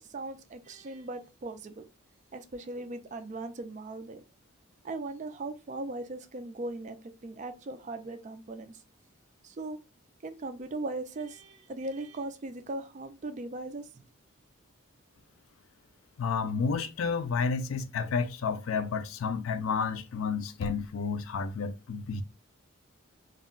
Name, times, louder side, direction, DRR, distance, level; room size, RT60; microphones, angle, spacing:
voice 1, 0.0-1.8 2.3-4.2 4.8-8.8 9.4-9.8 10.2-14.0, right 2 dB, 35° right, 0.3 m, -39 dB
voice 2, 16.2-22.2, left 5 dB, 75° left, 0.4 m, -31 dB
2.3 x 2.1 x 3.6 m
head